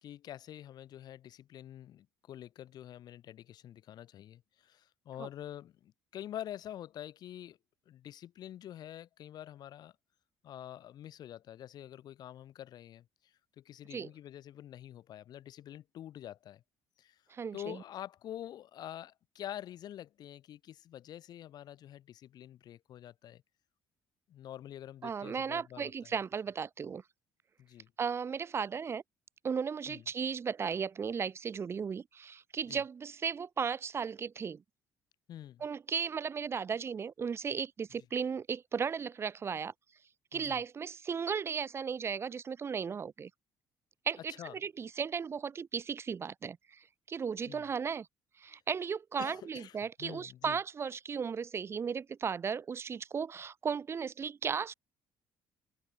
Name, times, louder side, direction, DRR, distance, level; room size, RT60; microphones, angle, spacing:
voice 1, 0.0-7.6 7.9-9.9 10.4-16.6 17.0-17.2 17.5-23.4 24.3-26.1 27.6-27.9 29.9-30.0 32.7-32.8 35.3-35.7 40.3-40.6 44.2-44.5 47.5-47.7 49.2-50.6, left 11 dB, 60° left, 4.7 m, -47 dB
voice 2, 17.3-17.8 25.0-27.0 28.0-29.0 29.4-34.6 35.6-39.7 40.3-43.3 44.1-48.1 48.4-54.7, right 6 dB, 35° right, 1.1 m, -36 dB
cardioid pair, 115°, 8 cm